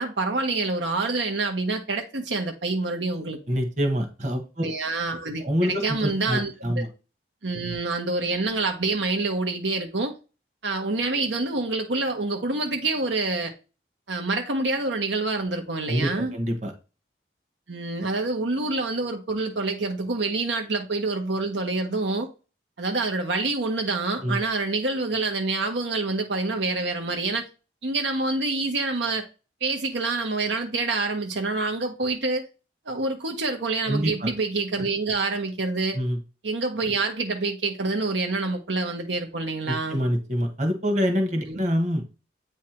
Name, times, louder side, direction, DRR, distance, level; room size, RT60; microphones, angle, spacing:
voice 1, 0.0-3.4 4.6-6.9 7.4-10.1 10.6-13.5 14.1-16.3 17.7-22.3 22.8-27.5 27.8-29.2 29.6-32.5 32.9-36.0 36.4-40.0 41.5-41.6, right 3 dB, 80° right, 1.0 m, -27 dB
voice 2, 3.5-4.6 5.4-6.9 15.9-16.7 24.2-24.4 33.9-34.3 35.9-36.2 39.7-42.0, equal, 40° right, 1.4 m, -26 dB
8.6 x 3.4 x 4.4 m
head